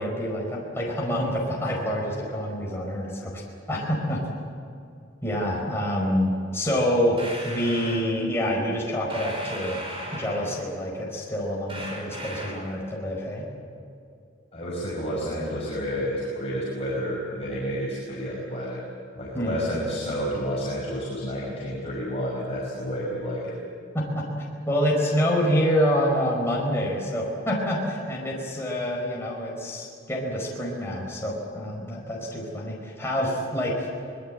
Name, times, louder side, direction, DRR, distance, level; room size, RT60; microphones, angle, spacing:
voice 1, 0.0-3.4 3.7-4.2 5.2-9.8 10.1-13.4 19.3-19.5 23.9-24.3 24.7-33.9, equal, 15° left, -3 dB, 4.8 m, -27 dB
sound 1, 7.2-8.1 9.1-10.7 11.7-12.7, equal, 30° right, 5.3 m, -37 dB
voice 2, 14.5-18.8 19.2-23.5, equal, 30° left, -6 dB, 5.6 m, -30 dB
25.0 x 21.0 x 7.8 m, 2.5 s
head